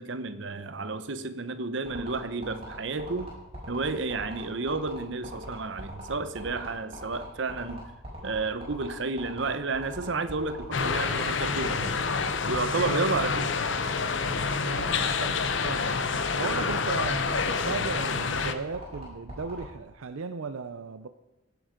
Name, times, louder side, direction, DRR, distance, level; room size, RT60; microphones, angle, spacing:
voice 1, 0.0-3.3 3.7-7.8 8.2-12.0 12.5-13.5, right 3 dB, 60° right, 12 dB, 0.9 m, -31 dB
sound 1, 1.9-19.6, right 1 dB, 30° right, 5.4 m, -41 dB
sound 2, 10.7-18.6, left 5 dB, 60° left, 0.8 m, -28 dB
voice 2, 14.6-15.9 16.3-21.1, right 5 dB, 80° right, 10 dB, 0.5 m, -36 dB
17.0 x 7.9 x 5.1 m, 0.97 s
head